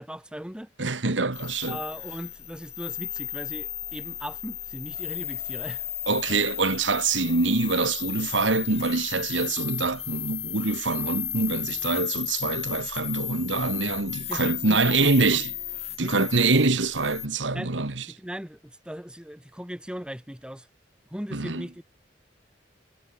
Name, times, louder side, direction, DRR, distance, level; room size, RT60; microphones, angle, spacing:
voice 1, 0.0-0.7 1.7-6.4 14.2-15.5 16.0-16.3 17.5-20.7 21.1-21.8, equal, 5° right, 1.5 m, -39 dB
voice 2, 0.8-1.8 6.1-15.5 16.0-18.0 21.3-21.6, right 3 dB, 90° right, 1.8 m, -25 dB
sound 1, 1.3-17.3, left 11 dB, 35° left, 4.1 m, -34 dB
head